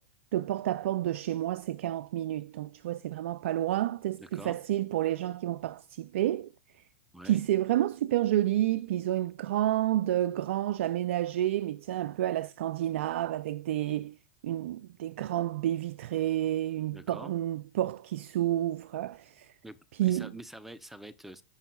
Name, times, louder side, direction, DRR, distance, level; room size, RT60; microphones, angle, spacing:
voice 1, 0.3-6.5 7.2-14.1 14.4-19.5 20.0-20.3, right 13 dB, 70° right, 0.4 m, -30 dB
voice 2, 4.2-4.6 7.1-7.4 16.9-17.3 19.6-21.4, right 1 dB, 5° right, 0.7 m, -46 dB
15.5 x 5.4 x 2.3 m
hypercardioid pair, 120°, 7 cm